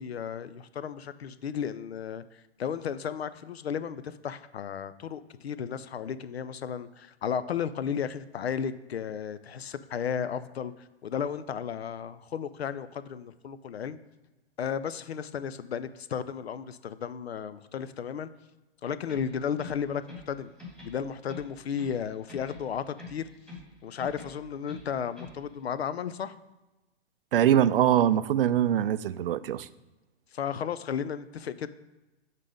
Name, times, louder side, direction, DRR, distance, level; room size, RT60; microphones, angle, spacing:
voice 1, 0.0-14.0 14.6-18.3 18.8-20.5 20.8-23.3 23.8-26.3 30.3-31.7, left 7 dB, 70° left, 14 dB, 0.5 m, -34 dB
sound 1, 19.1-20.3 20.6-22.0 22.3-23.7 24.0-25.4, left 3 dB, ahead, 1.7 m, -46 dB
voice 2, 27.3-29.7, right 10 dB, 60° right, 16 dB, 0.4 m, -23 dB
7.4 x 4.0 x 4.9 m, 1.1 s
figure-of-eight pair, 115°, 33 cm